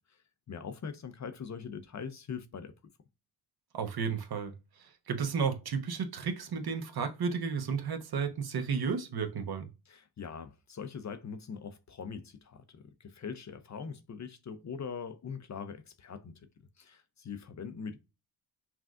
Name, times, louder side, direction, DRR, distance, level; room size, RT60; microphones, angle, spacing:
voice 1, 0.5-2.7 9.9-16.4 16.8-18.0, left 6 dB, 40° left, 0.6 m, -42 dB
voice 2, 3.7-4.5 5.1-9.6, right 6 dB, 50° right, 0.9 m, -32 dB
5.9 x 2.3 x 2.4 m
cardioid pair, 60°, 47 cm